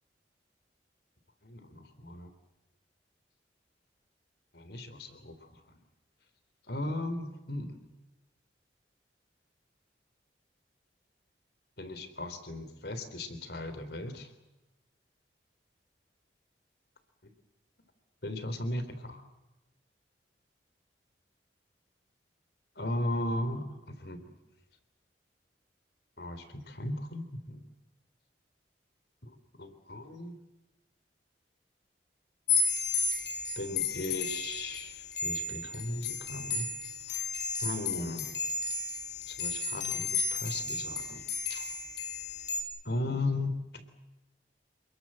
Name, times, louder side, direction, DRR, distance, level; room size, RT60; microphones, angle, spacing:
voice 1, 1.4-2.3 4.5-5.6 6.7-7.8 11.8-14.3 18.2-19.2 22.8-24.2 26.2-27.6 29.2-29.3 29.6-30.3 33.6-36.7 37.1-37.3 37.6-38.3 39.3-41.2 41.5-41.7 42.8-43.8, left 1 dB, 65° left, 10 dB, 3.7 m, -36 dB
sound 1, 32.5-42.6, left 4 dB, 85° left, 5.1 m, -33 dB
29.0 x 21.5 x 7.7 m, 1.0 s
head